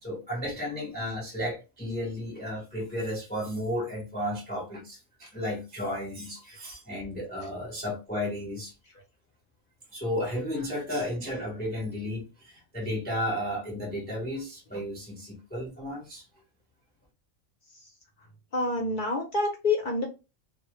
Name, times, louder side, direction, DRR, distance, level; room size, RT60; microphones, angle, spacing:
voice 1, 0.0-8.7 9.9-16.2, left 1 dB, 10° left, 0.5 m, -33 dB
voice 2, 18.5-20.0, left 2 dB, 55° left, 0.6 m, -27 dB
2.1 x 2.0 x 2.9 m
omnidirectional pair, 1.3 m